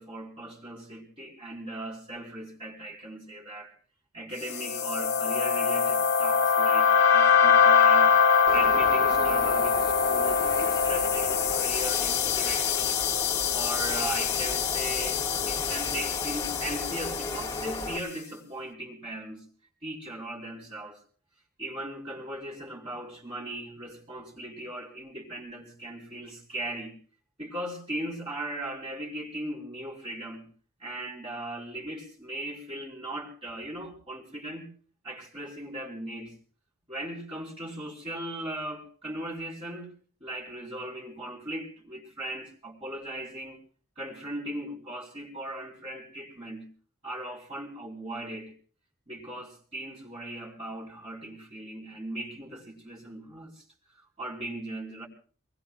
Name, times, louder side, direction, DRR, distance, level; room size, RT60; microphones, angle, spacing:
voice 1, 0.0-3.7 4.1-8.1 8.5-12.9 13.5-19.5 19.8-21.0 21.6-26.9 27.4-30.5 30.8-34.7 35.0-36.4 36.9-39.9 40.2-43.6 44.0-46.7 47.0-48.5 49.1-53.6 53.9-55.1, right 1 dB, 30° right, 3.7 m, -38 dB
sound 1, 4.5-17.8, left 6 dB, 60° left, 1.5 m, -24 dB
Bird, 8.5-18.0, left 2 dB, 20° left, 1.6 m, -35 dB
25.5 x 20.5 x 2.3 m
head